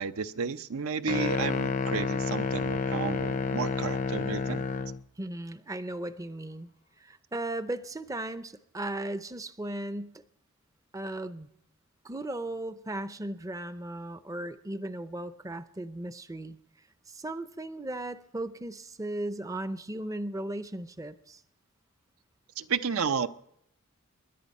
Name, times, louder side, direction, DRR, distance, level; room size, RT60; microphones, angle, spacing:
voice 1, 0.0-4.6 22.6-23.3, right 5 dB, 75° right, 11 dB, 0.6 m, -32 dB
sound 1, 1.1-5.0, left 4 dB, 35° left, 0.5 m, -30 dB
voice 2, 5.2-6.7 7.0-10.2 10.9-11.5 12.0-16.6 17.1-21.4, right 1 dB, 15° right, 12 dB, 0.5 m, -36 dB
25.0 x 11.0 x 5.4 m, 0.77 s
head